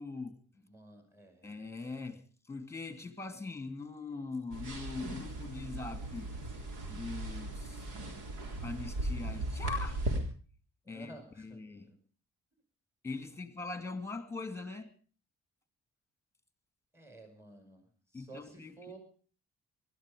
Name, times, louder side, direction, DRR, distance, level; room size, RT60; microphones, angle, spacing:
voice 1, 0.0-0.4 1.4-6.3 6.9-7.8 8.6-10.0 10.9-11.9 13.0-14.9 18.1-18.8, left 3 dB, 10° left, 10 dB, 2.5 m, -41 dB
voice 2, 0.5-1.5 10.9-12.0 16.9-19.0, right 2 dB, 10° right, 6 dB, 5.4 m, -53 dB
sound 1, 4.5-10.2, right 2 dB, 85° right, 3.8 m, -38 dB
19.0 x 13.0 x 5.0 m, 0.40 s
cardioid pair, 90°, 30 cm